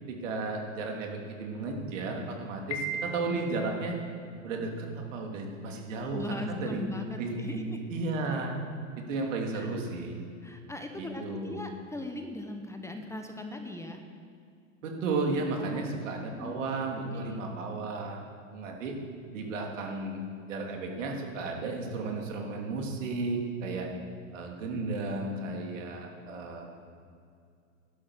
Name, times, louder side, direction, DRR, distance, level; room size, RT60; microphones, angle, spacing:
voice 1, 0.1-4.0 4.4-6.8 7.2-8.6 9.0-10.2 11.0-11.6 14.8-18.2 18.5-19.0 19.3-20.2 20.5-23.9 24.3-26.9, right 3 dB, 70° right, 1 dB, 3.0 m, -34 dB
Piano, 2.7-3.7, right 2 dB, 40° left, 2.0 m, -36 dB
voice 2, 6.1-7.8 9.5-9.8 10.4-14.0 15.6-16.6 17.1-17.5, left 1 dB, 5° left, 4 dB, 1.2 m, -40 dB
12.5 x 11.5 x 6.4 m, 2.3 s
hypercardioid pair, 100°, 40 cm